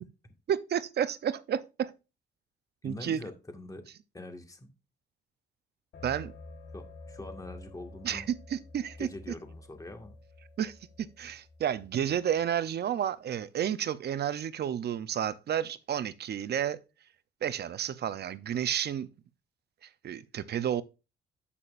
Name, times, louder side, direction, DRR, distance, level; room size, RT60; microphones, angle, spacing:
voice 1, 0.5-1.9 2.8-3.2 6.0-6.3 8.0-9.1 10.6-16.8 17.4-19.1 19.8-20.8, right 9 dB, 55° right, 0.7 m, -31 dB
voice 2, 2.8-3.8 4.1-4.7 6.7-8.3 9.0-10.2, left 2 dB, 15° left, 1.9 m, -44 dB
sound 1, 5.9-12.5, left 2 dB, 60° left, 1.3 m, -49 dB
8.7 x 8.5 x 2.6 m
cardioid pair, 90°, 20 cm